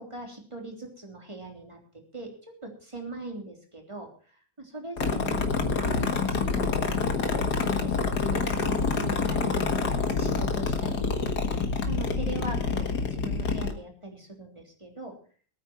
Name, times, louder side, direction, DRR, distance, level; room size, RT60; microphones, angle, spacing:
voice 1, 0.0-4.1 4.6-7.4 7.8-9.6 10.0-11.1 11.9-15.2, right 2 dB, 15° right, 2 dB, 3.4 m, -40 dB
sound 1, 5.0-13.7, left 4 dB, 65° left, 2.2 m, -27 dB
22.0 x 9.1 x 4.3 m, 0.41 s
omnidirectional pair, 1.9 m